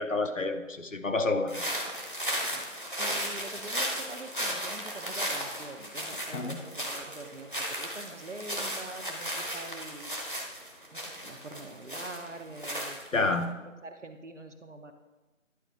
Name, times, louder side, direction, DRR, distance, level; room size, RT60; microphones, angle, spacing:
voice 1, 0.0-1.6 6.3-6.6 13.1-13.5, left 3 dB, 70° left, 7 dB, 0.9 m, -29 dB
sound 1, 1.5-13.4, equal, 40° left, 0.9 m, -35 dB
voice 2, 2.5-10.1 10.9-13.5 13.8-14.9, right 2 dB, 65° right, 6 dB, 0.8 m, -45 dB
11.0 x 4.5 x 3.6 m, 1.1 s
figure-of-eight pair, 175°, 40 cm